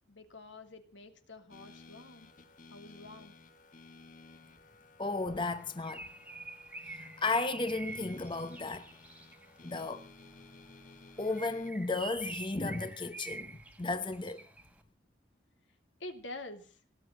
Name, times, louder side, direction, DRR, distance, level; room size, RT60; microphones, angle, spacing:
voice 1, 0.1-2.3 2.7-3.3 16.0-16.8, left 2 dB, 85° left, 2.8 m, -47 dB
sound 1, 1.5-11.7, left 3 dB, 45° left, 1.7 m, -56 dB
voice 2, 5.0-6.1 6.8-8.9 9.6-10.1 11.2-14.4, left 3 dB, 25° left, 0.8 m, -34 dB
Bird, 5.5-9.6 11.2-14.7, right 2 dB, 5° right, 1.4 m, -46 dB
18.0 x 9.3 x 7.8 m
head